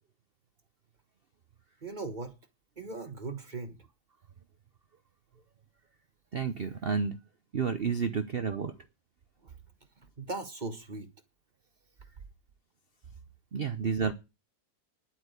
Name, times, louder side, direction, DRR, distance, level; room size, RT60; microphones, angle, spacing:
voice 1, 1.8-2.3 2.8-3.8 8.5-8.7 9.4-9.5 10.2-11.1, right 3 dB, 25° right, 1.4 m, -39 dB
voice 2, 6.3-7.2 7.5-8.7 13.5-14.1, right 6 dB, 45° right, 0.8 m, -30 dB
11.0 x 8.5 x 8.2 m
omnidirectional pair, 1.9 m